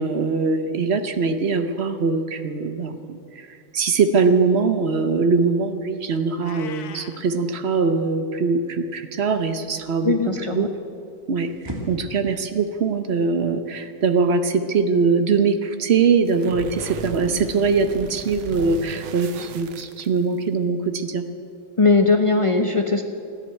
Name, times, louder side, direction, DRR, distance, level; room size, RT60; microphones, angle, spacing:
voice 1, 0.0-10.7 11.3-21.2, right 4 dB, 50° right, 9 dB, 0.9 m, -22 dB
Meow, 6.4-7.2, left 8 dB, 65° left, 1.3 m, -40 dB
voice 2, 10.0-10.7 21.8-23.0, left 3 dB, 40° left, 4 dB, 0.4 m, -19 dB
sound 1, 10.9-16.9, right 1 dB, 15° right, 2.1 m, -43 dB
sound 2, 16.3-20.5, right 6 dB, 80° right, 1.5 m, -36 dB
14.5 x 10.5 x 9.0 m, 2.4 s
omnidirectional pair, 1.9 m